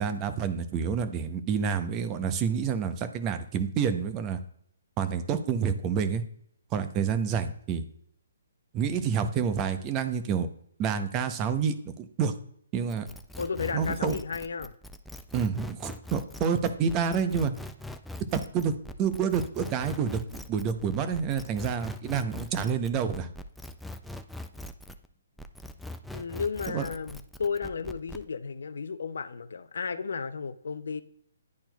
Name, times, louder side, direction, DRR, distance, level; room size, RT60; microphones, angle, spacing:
voice 1, 0.0-4.4 5.0-6.2 6.7-7.8 8.7-10.5 10.8-12.3 12.7-13.1 13.7-14.2 15.3-17.5 18.3-18.7 19.0-20.2 20.5-23.3 26.7-26.9, right 6 dB, 25° right, 0.7 m, -28 dB
sound 1, 12.9-25.1 25.4-28.3, left 1 dB, ahead, 0.3 m, -42 dB
voice 2, 13.4-14.7 26.1-31.0, left 5 dB, 70° left, 0.5 m, -33 dB
10.5 x 4.3 x 2.3 m
hypercardioid pair, 145°, 0 cm